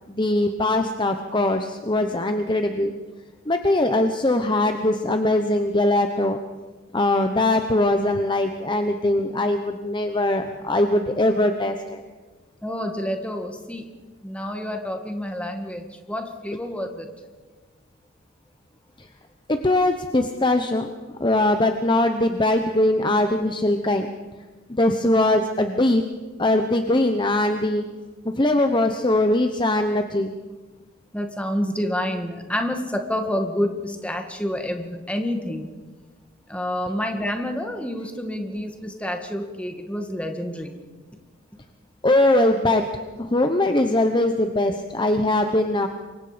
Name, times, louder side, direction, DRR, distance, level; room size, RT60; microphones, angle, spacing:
voice 1, 0.0-2.9 3.5-6.4 6.9-12.0 19.0-19.1 19.5-20.9 21.2-24.1 24.7-26.0 26.4-27.8 28.2-30.3 42.0-42.8 43.2-45.9, left 1 dB, 25° left, 6 dB, 1.0 m, -21 dB
voice 2, 12.6-13.9 14.2-17.1 31.1-35.7 36.5-40.7, left 1 dB, 5° left, 4 dB, 2.0 m, -28 dB
28.0 x 24.0 x 5.2 m, 1.3 s
head